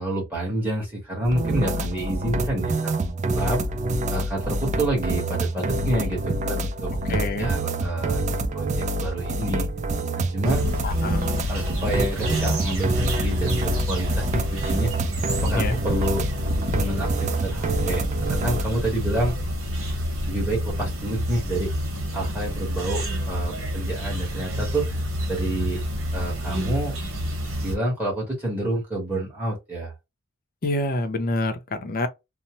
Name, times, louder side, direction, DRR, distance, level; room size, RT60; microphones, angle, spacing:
voice 1, 0.0-3.6 4.1-8.2 8.5-9.7 10.2-10.7 11.5-14.9 15.4-16.2 16.7-19.3 20.3-21.7 22.1-24.8 25.3-25.8 26.1-27.0 27.6-29.9, right 1 dB, 10° right, 1.1 m, -28 dB
sound 1, 1.2-18.6, right 1 dB, 35° right, 0.3 m, -27 dB
voice 2, 7.1-7.5 10.8-11.4 15.5-15.8 30.6-32.1, left 2 dB, 45° left, 0.5 m, -27 dB
sound 2, 10.4-27.8, equal, 75° right, 1.1 m, -28 dB
2.7 x 2.0 x 2.9 m
head